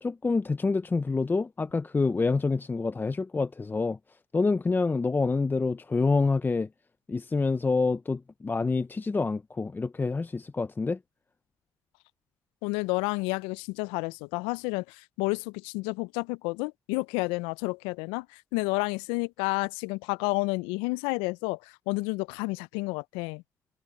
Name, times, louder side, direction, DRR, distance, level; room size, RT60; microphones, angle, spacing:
voice 1, 0.0-4.0 4.3-6.7 7.1-11.0, left 4 dB, 20° left, 0.6 m, -27 dB
voice 2, 12.6-18.3 18.5-21.6 21.9-23.4, left 26 dB, 85° left, 0.4 m, -30 dB
supercardioid pair, 65°, 9 cm